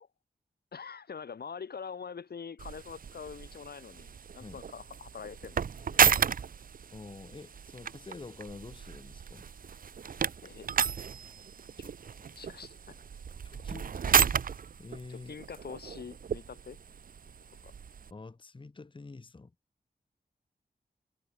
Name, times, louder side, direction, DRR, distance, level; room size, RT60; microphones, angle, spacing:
voice 1, 0.7-6.2 10.4-10.7 11.8-13.0 15.1-16.8 17.6-17.7, left 6 dB, 70° left, 1.2 m, -45 dB
sound 1, 2.6-18.1, right 7 dB, 60° right, 0.5 m, -33 dB
voice 2, 6.9-9.5 13.4-14.0 14.8-15.3 18.1-19.5, left 3 dB, 30° left, 1.0 m, -47 dB
wide cardioid pair, 100°, 17 cm